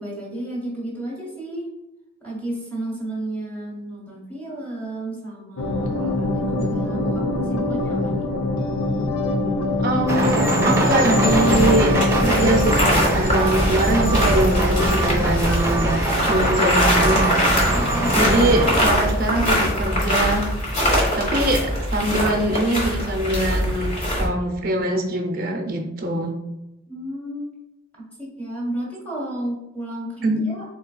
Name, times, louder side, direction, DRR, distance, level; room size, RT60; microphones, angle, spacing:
voice 1, 0.0-1.7 2.2-8.3 17.7-18.2 26.9-27.5 28.0-30.6, right 1 dB, 10° left, -5 dB, 1.4 m, -32 dB
sound 1, 5.6-15.2, left 2 dB, 70° left, 0.7 m, -24 dB
voice 2, 9.8-15.9 16.3-17.2 18.1-20.4 21.1-23.9 24.2-26.3 30.2-30.4, right 1 dB, 45° right, 2 dB, 0.6 m, -23 dB
sound 2, 10.1-18.9, right 2 dB, 15° right, 0.8 m, -23 dB
sound 3, 11.3-24.3, equal, 35° left, 1.2 m, -22 dB
4.1 x 3.9 x 2.3 m, 0.97 s
head